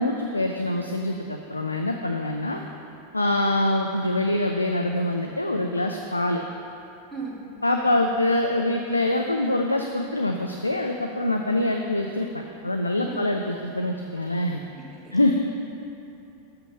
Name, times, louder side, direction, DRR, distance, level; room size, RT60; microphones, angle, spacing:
voice 1, 0.0-2.6 3.1-6.4 7.6-14.6 15.1-15.3, left 1 dB, 85° left, 3 dB, 0.4 m, -25 dB
voice 2, 7.1-7.4 13.0-13.4 14.7-15.3, right 4 dB, 15° right, -5 dB, 1.7 m, -38 dB
6.9 x 5.7 x 5.4 m, 2.8 s
figure-of-eight pair, 90°, 0 cm